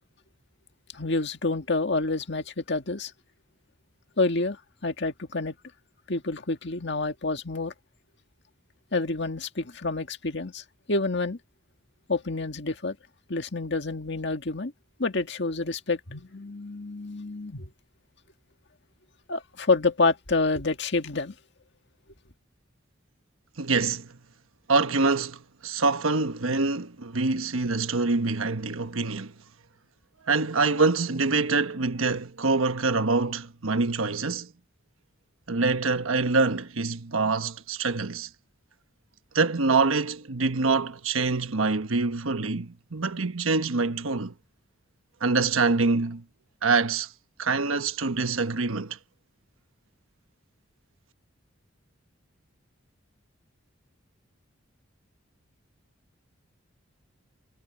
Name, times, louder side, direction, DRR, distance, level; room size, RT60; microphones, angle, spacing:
voice 1, 0.9-3.1 4.2-4.6 4.8-5.5 6.1-7.7 8.9-11.4 12.1-13.0 13.3-14.7 15.0-17.7 19.3-21.3, left 3 dB, 60° left, 1.9 m, -28 dB
voice 2, 23.6-24.1 24.7-29.3 30.2-34.5 35.5-38.3 39.3-44.3 45.2-46.2 46.6-47.1 47.4-49.0, right 3 dB, 90° right, 1.2 m, -25 dB
head